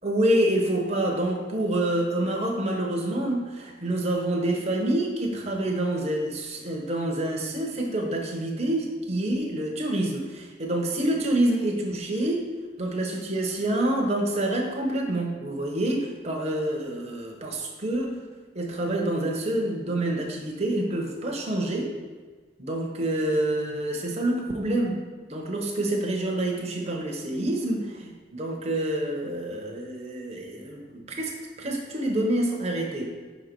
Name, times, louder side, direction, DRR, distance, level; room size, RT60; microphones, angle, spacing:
voice 1, 0.0-12.5 12.8-18.2 18.5-21.9 22.6-33.1, right 1 dB, 35° right, 0 dB, 0.8 m, -27 dB
5.9 x 4.0 x 4.5 m, 1.4 s
head